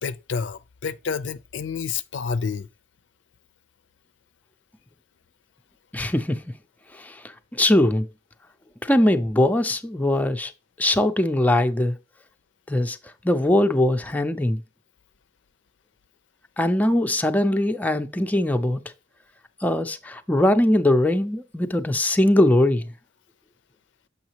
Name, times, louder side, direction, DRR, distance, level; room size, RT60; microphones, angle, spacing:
voice 1, 0.0-2.7, left 5 dB, 80° left, 0.5 m, -29 dB
voice 2, 5.9-6.4 6.9-7.2 7.5-8.1 8.8-10.5 10.8-12.0 12.7-13.0 13.2-14.6 16.6-18.8 19.6-22.9, left 1 dB, 10° left, 0.4 m, -21 dB
7.1 x 5.6 x 2.9 m
head